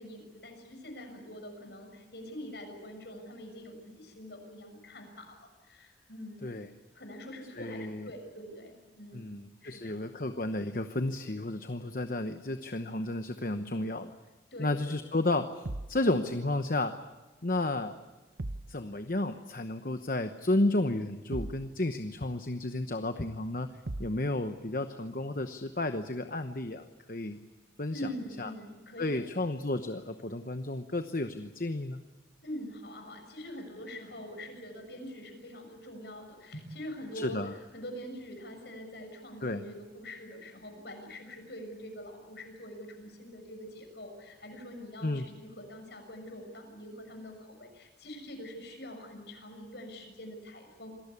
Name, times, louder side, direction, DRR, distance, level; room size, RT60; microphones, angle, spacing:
voice 1, 0.0-6.5 6.9-9.3 9.6-10.0 14.5-14.9 27.9-29.5 32.4-50.9, equal, 65° left, 4 dB, 6.6 m, -44 dB
voice 2, 7.5-8.1 9.1-14.1 14.6-17.0 17.4-18.0 18.7-23.7 24.0-27.4 27.8-28.0 28.4-28.5 29.0-32.0 37.1-37.5 39.4-39.6 45.0-45.3, left 2 dB, 50° left, 8 dB, 1.0 m, -32 dB
sound 1, 15.6-16.0 18.4-18.8 21.3-21.7 23.9-24.2, right 2 dB, 65° right, 1.0 m, -37 dB
26.5 x 19.0 x 8.4 m, 1.2 s
head